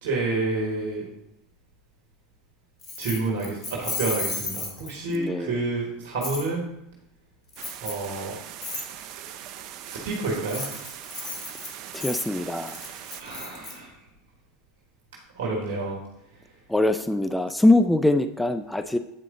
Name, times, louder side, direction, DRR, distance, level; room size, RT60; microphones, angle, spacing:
voice 1, 0.0-1.1 3.0-6.6 7.8-8.4 9.2-9.3 9.8-10.7 12.7-13.9 15.4-16.0, right 3 dB, 70° right, -1 dB, 1.5 m, -29 dB
Keys jangling, 2.8-5.1 6.2-6.4 7.5-8.1 8.6-8.8 10.3-13.7, left 3 dB, 35° left, 2.1 m, -34 dB
voice 2, 5.1-5.6 11.9-12.8 16.7-19.0, left 2 dB, 5° left, 10 dB, 0.4 m, -23 dB
sound 1, 7.6-13.2, right 10 dB, 55° right, 0.5 m, -41 dB
8.4 x 4.9 x 3.8 m, 0.80 s
hypercardioid pair, 85°, 0 cm